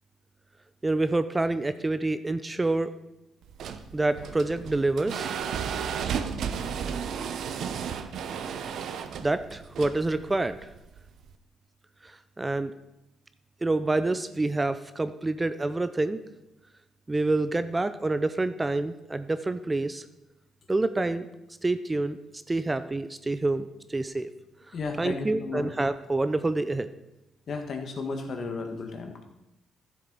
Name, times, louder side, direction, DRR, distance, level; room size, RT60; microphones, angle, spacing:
voice 1, 0.8-2.9 3.9-5.3 9.2-10.7 12.0-12.7 13.6-16.2 17.1-20.0 20.7-21.3 21.6-22.2 22.5-23.6 23.9-24.3 25.0-26.9, right 2 dB, 20° right, 11 dB, 0.5 m, -27 dB
sound 1, 3.4-11.3, right 7 dB, 70° right, 0.7 m, -34 dB
voice 2, 24.7-25.7 27.5-29.2, left 4 dB, 55° left, 4 dB, 1.5 m, -34 dB
12.5 x 7.5 x 4.0 m, 0.92 s
cardioid pair, 90°, 0 cm